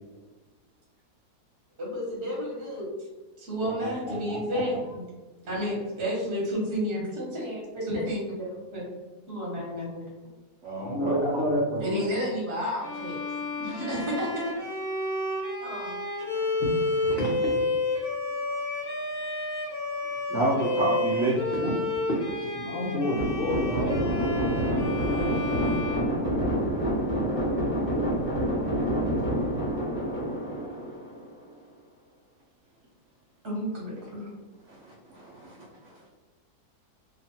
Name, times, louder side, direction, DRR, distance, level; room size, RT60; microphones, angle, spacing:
voice 1, 1.8-3.1 3.4-5.0 5.5-8.9 9.3-10.0 11.8-13.2 13.6-14.8 15.6-16.1 33.4-34.3, equal, 45° right, -5 dB, 1.1 m, -31 dB
voice 2, 3.6-4.6 10.8-12.1 16.6-16.7 17.0-17.5 21.5-21.7 22.1-23.9 25.0-25.8, left 1 dB, 90° left, -4 dB, 0.5 m, -30 dB
voice 3, 10.6-11.5 20.3-21.5 34.7-35.6 35.8-35.9, right 1 dB, 65° right, -7 dB, 0.8 m, -29 dB
Bowed string instrument, 12.8-26.9, left 2 dB, 55° left, 0.7 m, -31 dB
sound 1, 23.2-31.5, right 1 dB, 20° right, 0.9 m, -27 dB
2.9 x 2.3 x 2.7 m, 1.2 s
omnidirectional pair, 1.8 m